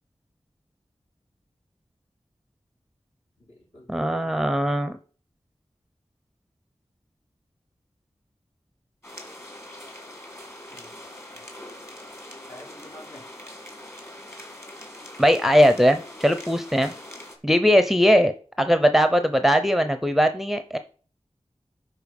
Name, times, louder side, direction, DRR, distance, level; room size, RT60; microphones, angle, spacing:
voice 1, 3.4-4.6 10.7-11.0 11.3-11.5 12.5-13.3 16.8-17.0, left 1 dB, 60° left, -3 dB, 4.0 m, -49 dB
voice 2, 3.9-5.0 15.2-16.9 17.4-18.3 18.6-20.8, equal, ahead, 9 dB, 0.7 m, -20 dB
sound 1, 9.0-17.4, left 1 dB, 20° left, 2.3 m, -42 dB
11.5 x 4.6 x 5.3 m, 0.39 s
wide cardioid pair, 55°, 11 cm